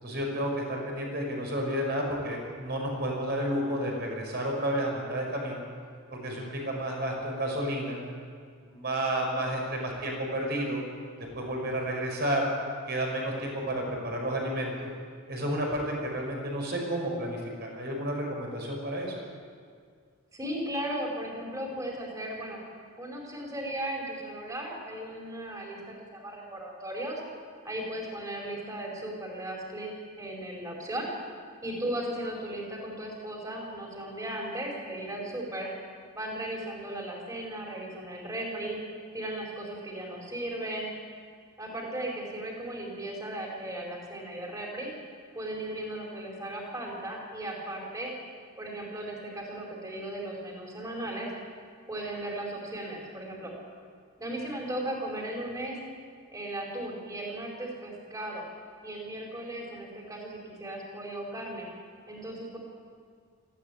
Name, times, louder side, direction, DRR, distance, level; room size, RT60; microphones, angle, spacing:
voice 1, 0.0-5.6 6.1-8.0 8.6-10.8 11.3-12.5 12.9-14.9 15.3-19.2, right 1 dB, 50° right, 0 dB, 5.7 m, -31 dB
voice 2, 20.3-22.6 23.0-27.2 27.6-29.9 30.2-31.1 31.6-35.7 36.1-38.8 39.1-40.9 41.6-44.9 45.3-48.1 48.6-51.3 51.9-53.5 54.2-55.8 56.3-58.5 58.8-61.7 62.1-62.6, right 1 dB, 15° right, -1 dB, 4.7 m, -36 dB
19.0 x 15.5 x 9.9 m, 2.1 s
head